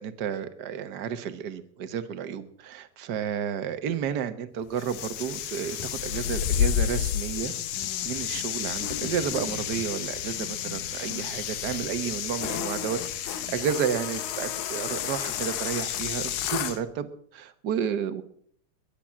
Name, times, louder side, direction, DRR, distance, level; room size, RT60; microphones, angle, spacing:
voice 1, 0.0-7.5 8.0-18.2, right 8 dB, 55° right, 11 dB, 1.1 m, -32 dB
sound 1, 4.8-16.8, left 10 dB, 85° left, 2.5 m, -31 dB
22.0 x 8.7 x 7.5 m, 0.62 s
omnidirectional pair, 3.3 m